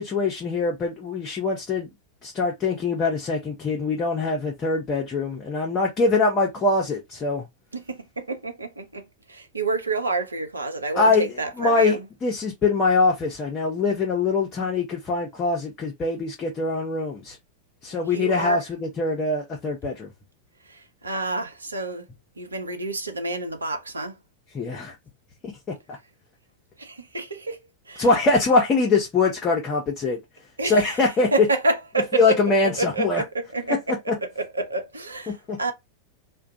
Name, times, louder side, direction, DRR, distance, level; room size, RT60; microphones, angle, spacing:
voice 1, 0.0-1.9 2.2-7.5 11.0-11.3 11.6-17.4 17.8-20.1 24.5-24.9 25.4-25.5 28.0-30.2 30.6-31.3 32.1-33.2 34.1-34.2 35.3-35.6, left 3 dB, 25° left, 0.8 m, -23 dB
voice 2, 7.7-12.1 18.1-18.7 20.7-22.1 22.4-24.2 26.8-27.6 27.9-28.1 30.6-32.4 32.8-35.7, right 3 dB, 80° right, 0.6 m, -29 dB
2.4 x 2.2 x 2.6 m
figure-of-eight pair, 90°, 0 cm